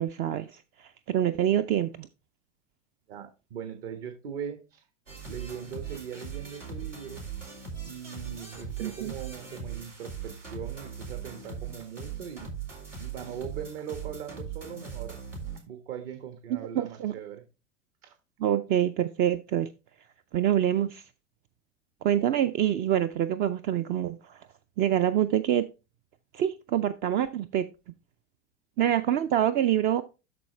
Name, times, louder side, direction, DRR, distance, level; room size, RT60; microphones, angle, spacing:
voice 1, 0.0-2.1 8.8-9.1 16.7-17.1 18.4-19.7 20.0-21.1 22.0-24.5 24.8-25.6 26.3-27.9 28.8-30.0, right 11 dB, 25° right, 0.4 m, -26 dB
voice 2, 3.1-4.8 5.3-7.2 7.9-12.7 13.0-15.2 15.7-17.4 18.0-18.2, right 8 dB, 55° right, 1.3 m, -40 dB
sound 1, 5.1-15.6, right 6 dB, 90° right, 2.9 m, -40 dB
13.0 x 4.3 x 3.1 m
figure-of-eight pair, 85°, 36 cm